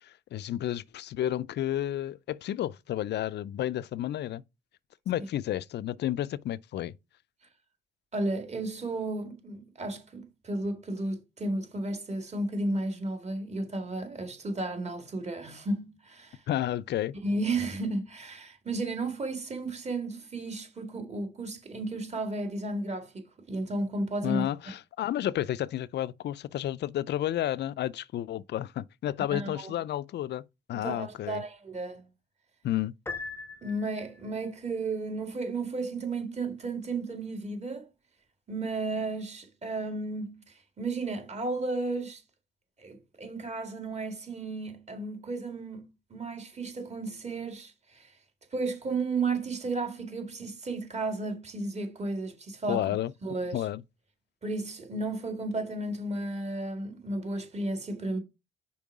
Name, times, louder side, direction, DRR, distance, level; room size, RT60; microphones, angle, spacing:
voice 1, 0.0-4.4 5.1-6.9 16.5-17.2 24.2-30.4 30.7-31.4 32.6-32.9 52.7-53.1 53.5-53.8, left 12 dB, 60° left, 0.4 m, -31 dB
voice 2, 8.1-16.4 17.2-24.5 29.3-29.7 30.8-32.0 33.6-37.9 38.5-42.2 42.8-45.8 46.1-48.2 48.5-53.0 53.2-53.7 54.4-58.2, right 2 dB, 35° right, 2.1 m, -33 dB
Piano, 33.1-34.3, left 4 dB, 10° left, 0.7 m, -40 dB
5.5 x 4.5 x 4.7 m
cardioid pair, 90°, 20 cm